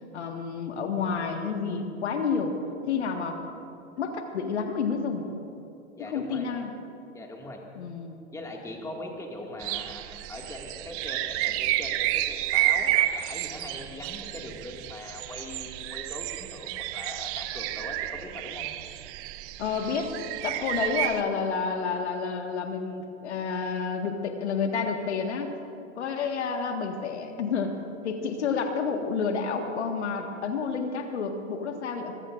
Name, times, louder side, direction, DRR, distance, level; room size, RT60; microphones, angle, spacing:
voice 1, 0.1-2.6 2.9-3.4 4.0-5.3 6.0-6.7 7.8-8.2 19.6-20.1 20.4-25.5 26.0-27.8 28.0-32.1, left 5 dB, 70° left, 4 dB, 1.7 m, -30 dB
voice 2, 6.0-6.5 7.1-7.6 8.3-18.7 26.1-26.3, left 1 dB, 10° left, 0 dB, 2.0 m, -41 dB
sound 1, 9.6-21.2, right 15 dB, 40° right, 0.8 m, -30 dB
24.0 x 22.0 x 2.5 m, 2.7 s
figure-of-eight pair, 90°, 35 cm